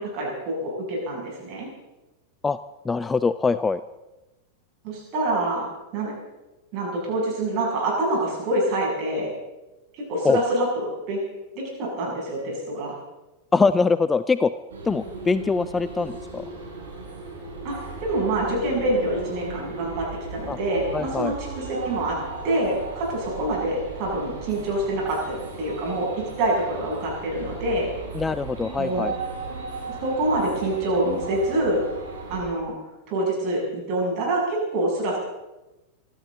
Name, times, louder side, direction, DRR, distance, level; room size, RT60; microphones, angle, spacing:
voice 1, 0.0-1.7 4.8-6.1 6.7-9.3 9.9-11.2 11.5-13.0 17.6-20.1 20.3-22.2 22.4-26.1 26.4-27.9 28.8-29.1 30.0-31.8 32.3-32.7 33.1-35.2, right 1 dB, 40° right, -2 dB, 7.9 m, -26 dB
voice 2, 2.8-3.8 10.2-10.4 13.5-14.5 14.8-16.5 20.5-20.6 20.9-21.3 28.1-29.1, left 4 dB, 15° left, 14 dB, 0.5 m, -23 dB
sound 1, 14.7-32.4, right 3 dB, 60° right, 6.1 m, -36 dB
25.5 x 13.5 x 4.0 m, 1.0 s
figure-of-eight pair, 90°, 0 cm